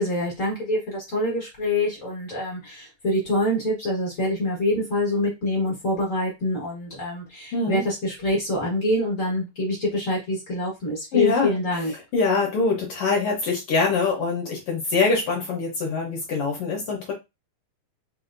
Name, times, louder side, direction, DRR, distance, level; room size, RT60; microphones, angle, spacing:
voice 1, 0.0-11.9, left 1 dB, 40° left, -3 dB, 1.2 m, -25 dB
voice 2, 7.5-7.8 11.1-17.1, left 4 dB, 60° left, -1 dB, 1.7 m, -24 dB
5.1 x 2.7 x 2.5 m, 0.23 s
omnidirectional pair, 3.3 m